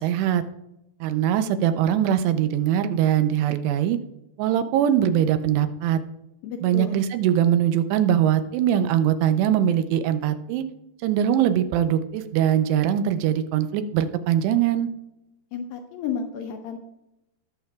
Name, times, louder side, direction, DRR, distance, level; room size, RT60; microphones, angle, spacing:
voice 1, 0.0-0.4 1.0-4.0 4.4-6.0 6.6-10.7 11.0-14.9, right 10 dB, 85° right, 10 dB, 2.8 m, -22 dB
voice 2, 6.4-7.0 15.5-16.8, left 7 dB, 80° left, 3 dB, 2.2 m, -32 dB
19.0 x 6.6 x 2.3 m, 0.88 s
omnidirectional pair, 4.8 m